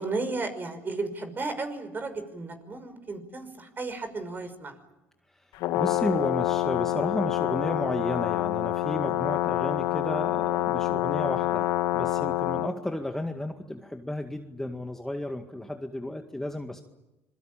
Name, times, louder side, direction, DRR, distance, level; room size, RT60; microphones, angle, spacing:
voice 1, 0.0-4.7 12.5-12.7, right 3 dB, 30° right, 9 dB, 5.7 m, -34 dB
Brass instrument, 5.5-12.7, left 13 dB, 75° left, 1.8 m, -27 dB
voice 2, 5.7-16.8, left 1 dB, 5° left, 5 dB, 2.0 m, -33 dB
26.5 x 23.0 x 8.9 m, 0.96 s
supercardioid pair, 85°, 7 cm